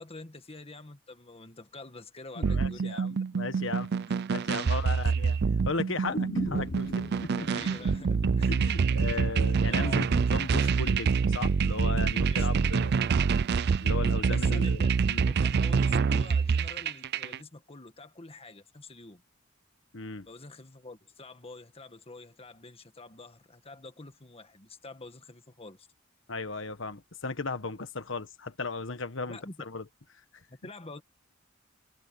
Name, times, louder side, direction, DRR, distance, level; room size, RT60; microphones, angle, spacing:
voice 1, 0.0-3.2 4.6-4.7 5.0-5.1 7.4-8.6 9.6-10.0 12.3-12.7 14.3-14.9 15.2-19.2 20.2-25.9 29.2-29.6 30.5-31.0, left 2 dB, 30° left, 1.6 m, -47 dB
voice 2, 2.4-3.9 4.3-5.4 5.7-7.5 8.4-12.9 13.8-14.8 15.1-15.2 19.9-20.3 26.3-29.4 29.6-29.8, left 3 dB, 70° left, 1.5 m, -36 dB
sound 1, 2.4-17.4, right 5 dB, 55° right, 0.4 m, -26 dB
sound 2, 6.1-10.1 10.4-10.5, left 2 dB, 45° left, 1.0 m, -40 dB
head